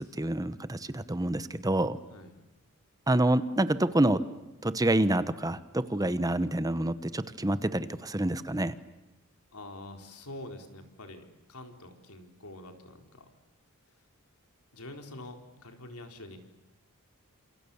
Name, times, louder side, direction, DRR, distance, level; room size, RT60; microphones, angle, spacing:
voice 1, 0.0-2.0 3.1-4.2 4.6-8.7, right 1 dB, 15° right, 13 dB, 1.0 m, -27 dB
voice 2, 9.5-13.3 14.7-16.4, left 1 dB, 85° left, 4 dB, 4.2 m, -46 dB
30.0 x 27.5 x 7.1 m, 1.0 s
head